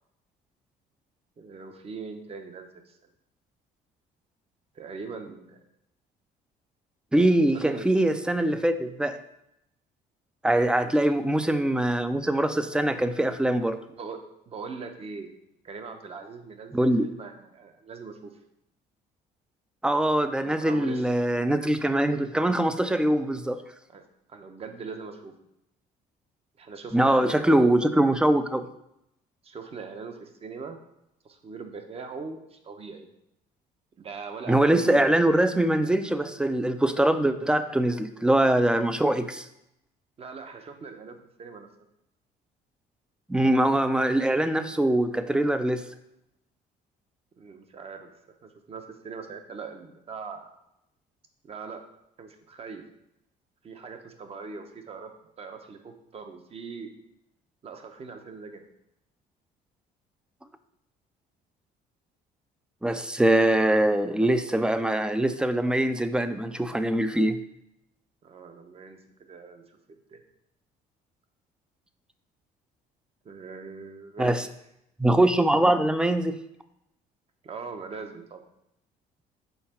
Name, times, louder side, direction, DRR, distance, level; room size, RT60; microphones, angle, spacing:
voice 1, 1.4-3.0 4.7-5.6 7.5-7.9 10.8-11.2 14.0-15.3 15.6-18.3 20.4-21.1 22.0-22.2 23.9-24.0 24.3-25.3 26.6-27.4 29.4-30.8 31.2-33.1 34.0-35.1 40.2-41.7 47.4-48.1 48.4-50.5 51.4-51.8 52.2-52.8 53.6-55.1 55.4-56.9 57.6-58.6 68.2-69.8 70.1-70.2 73.2-74.5 77.4-78.4, right 5 dB, 35° right, 6 dB, 0.9 m, -41 dB
voice 2, 7.1-9.2 10.4-13.8 16.7-17.1 19.8-23.6 26.9-28.7 34.5-39.5 43.3-45.8 62.8-67.4 74.2-74.5 75.0-76.4, right 1 dB, 5° right, 10 dB, 0.4 m, -23 dB
5.7 x 4.4 x 4.3 m, 0.81 s
cardioid pair, 110°, 17 cm